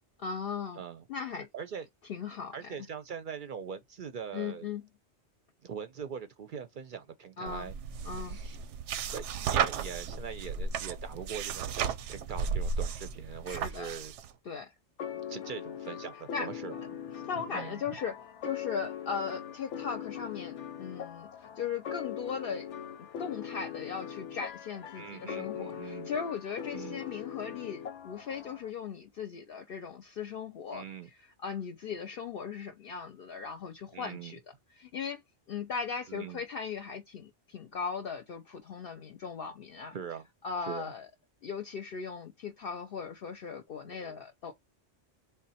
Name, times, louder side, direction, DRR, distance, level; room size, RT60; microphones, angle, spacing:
voice 1, 0.2-0.8 1.1-1.5 2.1-2.7 4.3-4.8 7.4-7.7 8.0-8.4 13.5-13.9 14.5-14.7 16.3-16.5 17.2-18.2 18.4-22.7 23.0-30.8 31.4-34.4 34.7-35.2 35.5-40.0 40.4-41.1 41.4-44.5, left 6 dB, 60° left, 0.7 m, -38 dB
voice 2, 1.3-1.9 2.5-4.7 5.6-7.7 8.1-8.6 9.1-14.1 15.3-16.8 17.5-18.0 24.9-26.1 26.7-27.0 30.7-31.1 33.9-34.4 36.1-36.4 39.9-40.3 40.7-40.9 43.8-44.2, right 7 dB, 55° right, 0.6 m, -42 dB
sound 1, 7.5-14.3, right 6 dB, 90° right, 0.9 m, -34 dB
sound 2, 15.0-28.7, left 9 dB, 85° left, 1.0 m, -41 dB
3.7 x 2.2 x 4.0 m
omnidirectional pair, 1.2 m